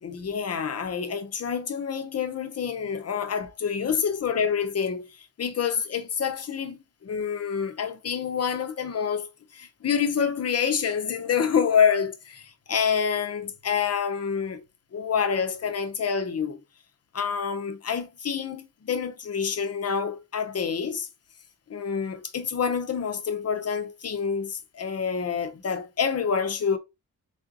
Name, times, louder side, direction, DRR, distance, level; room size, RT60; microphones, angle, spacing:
voice 1, 0.0-14.6 14.9-16.6 17.1-21.1 21.7-26.8, left 7 dB, 45° left, 0.7 m, -27 dB
3.8 x 3.5 x 2.7 m
wide cardioid pair, 105°, 33 cm